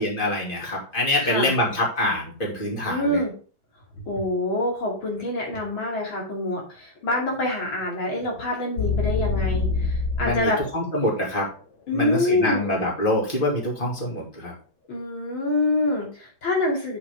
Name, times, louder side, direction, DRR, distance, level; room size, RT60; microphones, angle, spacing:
voice 1, 0.0-3.2 10.2-11.5 11.9-14.5, left 1 dB, 25° left, -2 dB, 2.8 m, -25 dB
voice 2, 2.9-3.3 4.0-10.6 11.9-12.7 14.9-17.0, left 2 dB, 85° left, -2 dB, 3.4 m, -26 dB
sound 1, 8.8-10.5, left 4 dB, 65° left, 1.5 m, -24 dB
8.3 x 6.8 x 3.6 m, 0.40 s
omnidirectional pair, 2.1 m